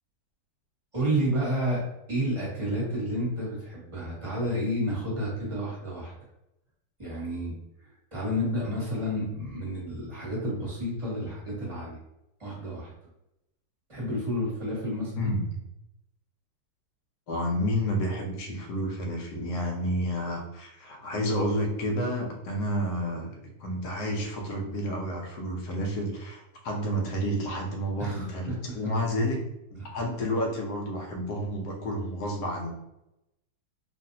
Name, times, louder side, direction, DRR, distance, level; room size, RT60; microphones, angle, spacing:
voice 1, 0.9-1.8 2.1-6.1 7.0-7.5 7.8-12.0 12.4-12.9 13.9-15.3 28.0-28.8 29.8-29.9, equal, 20° right, -6 dB, 1.1 m, -30 dB
voice 2, 15.2-15.6 17.3-23.3 23.6-29.4 29.7-32.7, equal, 65° left, 0 dB, 1.1 m, -30 dB
3.1 x 2.6 x 2.7 m, 0.88 s
omnidirectional pair, 2.1 m